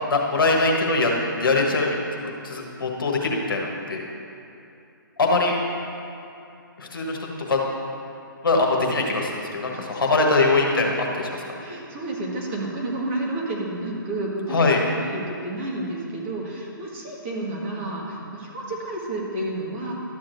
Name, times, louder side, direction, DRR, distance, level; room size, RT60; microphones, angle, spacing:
voice 1, 0.0-1.1 1.4-4.0 5.2-5.5 6.8-7.2 7.5-7.6 8.4-11.3 14.5-14.8, left 3 dB, 75° left, 0 dB, 1.4 m, -22 dB
voice 2, 9.7-10.3 11.6-19.9, right 1 dB, 35° right, -3 dB, 1.7 m, -31 dB
12.5 x 7.2 x 2.7 m, 2.6 s
figure-of-eight pair, 140°, 12 cm